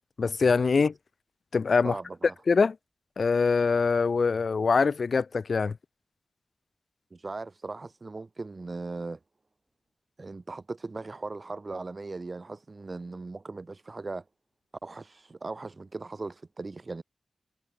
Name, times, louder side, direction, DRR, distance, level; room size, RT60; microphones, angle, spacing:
voice 1, 0.2-0.9 1.5-2.0 2.5-2.8 3.2-5.7, left 4 dB, 60° left, 3.5 m, -23 dB
voice 2, 1.8-2.3 7.1-9.2 10.2-14.2 14.8-17.0, right 3 dB, 40° right, 7.3 m, -38 dB
wide cardioid pair, 105°, 0 cm